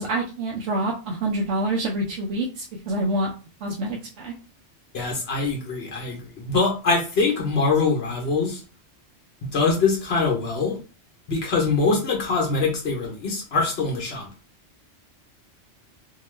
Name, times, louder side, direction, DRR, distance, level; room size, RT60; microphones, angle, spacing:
voice 1, 0.0-3.3 3.6-4.3, right 1 dB, 85° right, -2 dB, 0.9 m, -26 dB
voice 2, 4.9-8.6 9.5-10.8 11.3-14.3, left 4 dB, 65° left, 0 dB, 1.0 m, -23 dB
2.8 x 2.2 x 3.1 m, 0.34 s
omnidirectional pair, 1.2 m